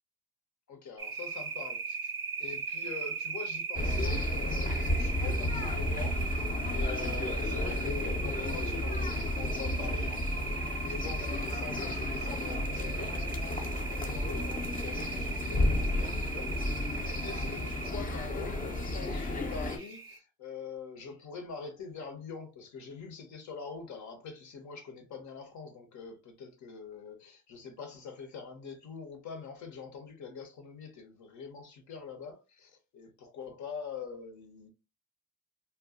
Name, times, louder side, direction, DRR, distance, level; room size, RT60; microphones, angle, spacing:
voice 1, 0.7-2.1 2.4-10.2 10.7-34.7, left 5 dB, 70° left, 1.0 m, -44 dB
sound 1, 1.0-20.2, right 6 dB, 10° right, 0.7 m, -39 dB
sound 2, 3.8-19.8, left 1 dB, 30° left, 0.6 m, -32 dB
2.2 x 2.1 x 3.6 m
cardioid pair, 90°, 30 cm